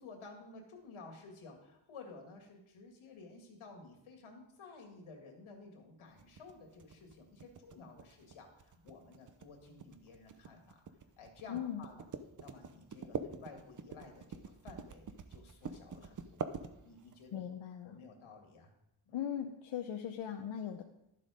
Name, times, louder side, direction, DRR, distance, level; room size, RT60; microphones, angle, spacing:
voice 1, 0.0-10.8 11.2-12.1 12.4-15.0 15.3-16.5 16.8-17.5 17.8-18.7 19.1-19.2, left 3 dB, 90° left, 3 dB, 2.3 m, -53 dB
sound 1, 6.2-17.2, right 5 dB, 40° right, 0.7 m, -45 dB
voice 2, 11.5-11.8 17.3-18.0 19.1-20.8, left 9 dB, 70° left, 4 dB, 0.8 m, -39 dB
11.5 x 7.6 x 5.1 m, 0.85 s
wide cardioid pair, 130°, 47 cm